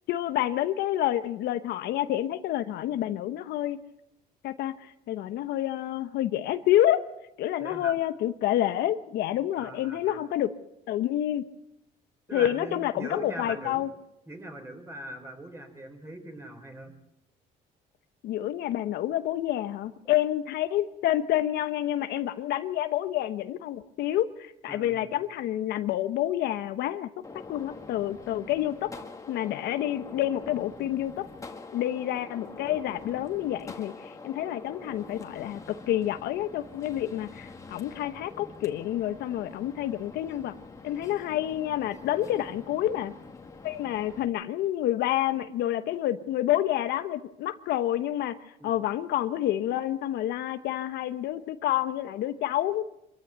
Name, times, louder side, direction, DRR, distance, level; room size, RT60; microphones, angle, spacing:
voice 1, 0.1-3.8 4.4-7.0 7.4-10.5 10.9-11.5 12.3-13.9 18.2-27.1 27.5-28.9 29.3-31.3 31.7-40.5 40.8-43.1 43.6-48.4 48.6-52.8, left 12 dB, 80° left, 10 dB, 1.0 m, -28 dB
voice 2, 7.6-7.9 9.6-10.2 12.3-13.9 14.3-16.9 24.7-25.2 42.2-42.4 48.6-48.8, right 1 dB, 15° right, 4 dB, 4.7 m, -41 dB
Gunshot gunfire, 27.2-44.3, left 3 dB, 20° left, 2.1 m, -45 dB
25.5 x 14.5 x 8.2 m, 0.87 s
cardioid pair, 110°, 17 cm